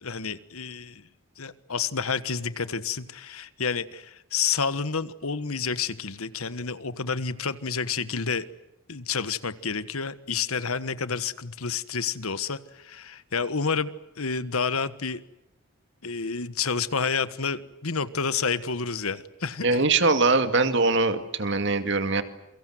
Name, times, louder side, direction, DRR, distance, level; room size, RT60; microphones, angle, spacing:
voice 1, 0.0-1.0 1.4-8.5 8.9-13.9 14.2-15.2 16.0-19.8, left 5 dB, 85° left, 14 dB, 1.4 m, -29 dB
voice 2, 19.6-22.2, right 3 dB, 55° right, 9 dB, 2.3 m, -22 dB
28.0 x 24.0 x 7.8 m, 0.90 s
head